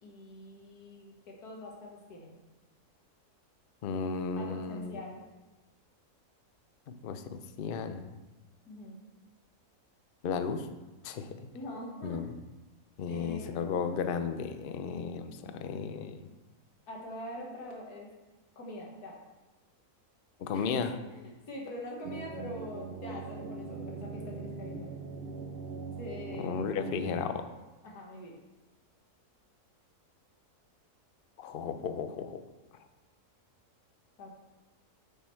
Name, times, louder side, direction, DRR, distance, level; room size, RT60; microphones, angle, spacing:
voice 1, 0.0-2.4 4.4-5.2 8.6-9.0 11.5-12.3 13.1-13.8 15.4-15.6 16.9-18.1 18.6-19.2 20.5-24.9 26.0-26.5 27.8-28.4 34.2-34.3, left 1 dB, 90° left, -1 dB, 2.0 m, -44 dB
voice 2, 3.8-5.0 7.0-8.1 10.2-10.7 11.0-11.5 12.0-12.3 13.0-16.3 20.4-20.9 26.3-27.4 31.4-32.4, left 6 dB, 65° left, 9 dB, 0.5 m, -34 dB
sound 1, 22.0-27.2, right 4 dB, 65° right, 0.6 m, -41 dB
6.8 x 6.3 x 4.4 m, 1.1 s
omnidirectional pair, 1.6 m